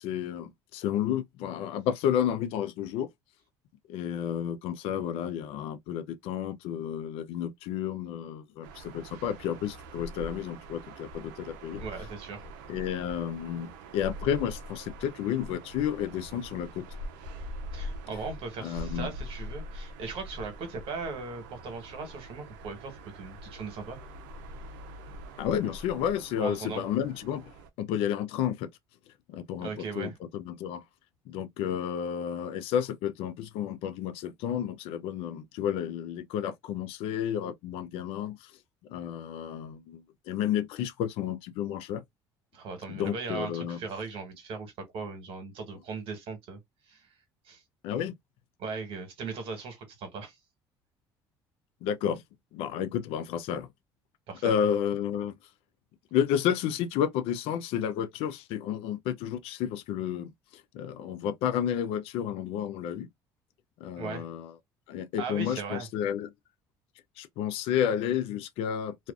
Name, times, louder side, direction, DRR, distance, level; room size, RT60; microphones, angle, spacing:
voice 1, 0.0-3.1 3.9-11.8 12.7-16.9 18.6-19.1 25.4-27.5 27.8-28.7 29.3-30.8 31.3-38.5 38.9-42.0 42.9-43.8 47.8-48.1 51.8-52.2 52.5-53.7 54.4-55.3 56.1-63.1 63.8-64.5 64.9-66.3 67.2-69.1, left 9 dB, 75° left, 0.4 m, -31 dB
sound 1, 8.6-27.7, equal, 90° right, 0.5 m, -43 dB
voice 2, 11.8-12.5 17.7-24.0 26.4-26.8 29.6-30.1 42.5-46.6 46.9-47.1 47.4-47.6 48.6-50.4 54.3-54.5 64.0-64.2 65.2-65.9, right 4 dB, 65° right, 1.3 m, -38 dB
2.4 x 2.4 x 2.4 m
supercardioid pair, 80°, 10 cm